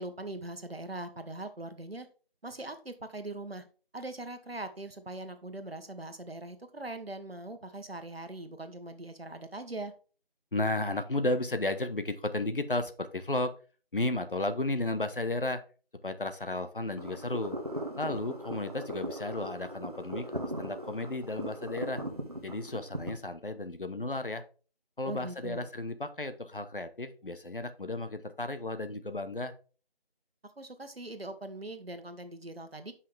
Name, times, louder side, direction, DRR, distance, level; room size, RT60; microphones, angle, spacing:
voice 1, 0.0-2.1 2.4-3.7 3.9-9.9 25.0-25.7 30.6-32.9, right 2 dB, 75° right, 8 dB, 1.2 m, -41 dB
voice 2, 10.5-13.5 13.9-15.6 16.0-17.6 18.0-22.0 22.4-24.4 25.0-29.5, left 2 dB, 60° left, 10 dB, 0.9 m, -33 dB
sound 1, 17.0-23.1, right 1 dB, 40° right, 1.1 m, -39 dB
7.5 x 5.6 x 3.3 m, 0.37 s
figure-of-eight pair, 170°, 30 cm